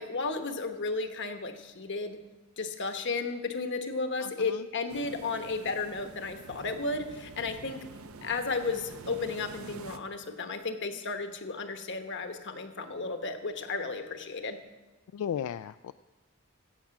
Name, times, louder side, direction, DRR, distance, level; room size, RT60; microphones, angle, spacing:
voice 1, 0.0-2.2 2.6-7.8 8.2-14.6, left 3 dB, 60° left, 7 dB, 1.1 m, -33 dB
voice 2, 4.2-4.6 15.1-15.9, left 8 dB, 85° left, 12 dB, 0.3 m, -35 dB
sound 1, 4.9-10.0, right 3 dB, 75° right, 0.7 m, -47 dB
16.0 x 7.4 x 5.9 m, 1.1 s
head